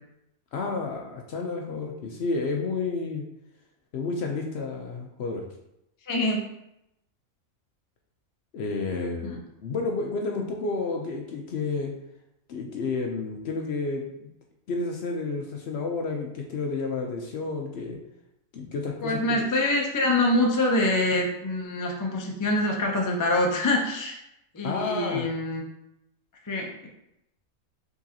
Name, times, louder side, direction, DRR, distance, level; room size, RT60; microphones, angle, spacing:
voice 1, 0.5-3.2 3.9-5.4 8.5-11.9 12.5-14.3 14.7-18.0 18.5-19.5 24.6-25.3, left 3 dB, 60° left, 1 dB, 0.7 m, -31 dB
voice 2, 6.1-6.4 9.2-9.4 19.0-24.2 24.5-25.7 26.5-26.9, left 1 dB, 30° left, 0 dB, 0.3 m, -25 dB
4.9 x 3.9 x 2.8 m, 0.83 s
omnidirectional pair, 1.5 m